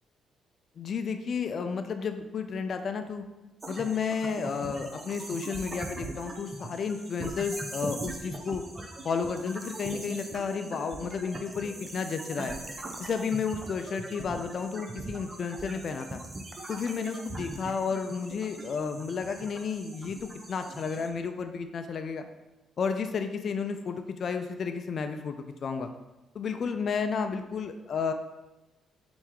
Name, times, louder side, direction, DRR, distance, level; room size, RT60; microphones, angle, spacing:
voice 1, 0.8-3.2 3.7-8.6 9.0-12.6 13.0-16.2 16.7-22.2 22.8-25.9 26.3-28.1, left 5 dB, 55° left, 7 dB, 0.3 m, -32 dB
sound 1, 3.6-21.1, right 2 dB, 25° right, 0.6 m, -41 dB
4.3 x 3.0 x 3.7 m, 1.1 s
cardioid pair, 90°, 0 cm